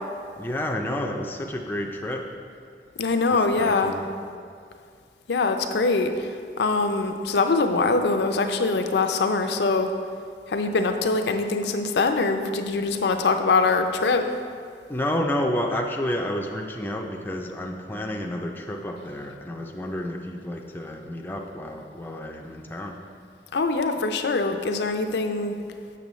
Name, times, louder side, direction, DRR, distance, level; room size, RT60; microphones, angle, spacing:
voice 1, 0.4-2.3 3.6-4.1 14.9-23.0, left 1 dB, 10° left, 2 dB, 0.4 m, -30 dB
voice 2, 3.0-3.9 5.3-9.9 10.5-14.3 23.5-25.6, left 3 dB, 70° left, 6 dB, 0.5 m, -23 dB
6.9 x 6.8 x 3.1 m, 2.2 s
head